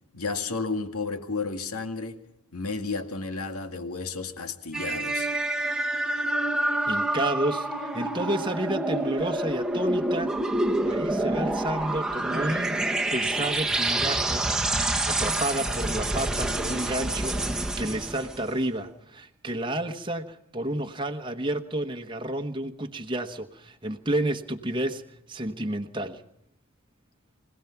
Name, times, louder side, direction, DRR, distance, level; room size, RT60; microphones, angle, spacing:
voice 1, 0.1-2.2 2.5-5.3, left 4 dB, 85° left, 7 dB, 2.2 m, -32 dB
sound 1, 4.7-18.5, right 2 dB, 5° right, 1.3 m, -27 dB
voice 2, 6.9-10.3 10.8-12.8 13.1-14.5 15.0-25.0 25.3-26.2, right 1 dB, 20° right, 5 dB, 1.2 m, -31 dB
25.5 x 17.5 x 5.9 m, 0.78 s
head